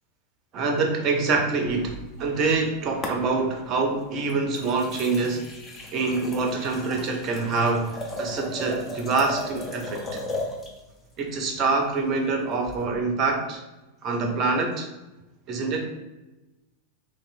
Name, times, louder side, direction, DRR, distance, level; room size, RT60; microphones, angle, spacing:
voice 1, 0.5-5.4 5.9-10.0 11.2-13.6 14.0-14.9 15.5-15.9, right 3 dB, 35° right, 3 dB, 0.5 m, -25 dB
sound 1, 1.7-2.6 3.0-3.7 4.3-10.8 12.7-12.8, left 1 dB, 20° left, 0.5 m, -36 dB
3.0 x 2.8 x 2.5 m, 1.0 s
figure-of-eight pair, 90°, 0 cm